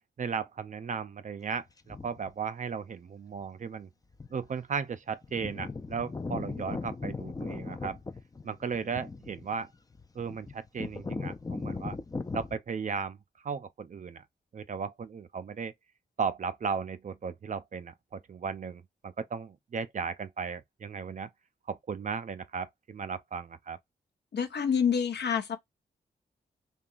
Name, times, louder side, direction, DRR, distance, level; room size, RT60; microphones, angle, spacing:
voice 1, 0.2-3.9 4.3-8.0 8.4-9.7 10.1-12.0 12.3-13.2 13.4-14.2 14.5-15.7 16.2-21.3 21.7-23.8, right 6 dB, 45° right, 0.4 m, -36 dB
sound 1, 1.9-2.3 3.4-3.5 4.1-4.5 4.8-4.9 5.1-12.6, left 3 dB, 20° left, 0.4 m, -38 dB
voice 2, 24.3-25.6, left 7 dB, 65° left, 0.7 m, -27 dB
2.8 x 2.3 x 2.3 m
supercardioid pair, 40°, 19 cm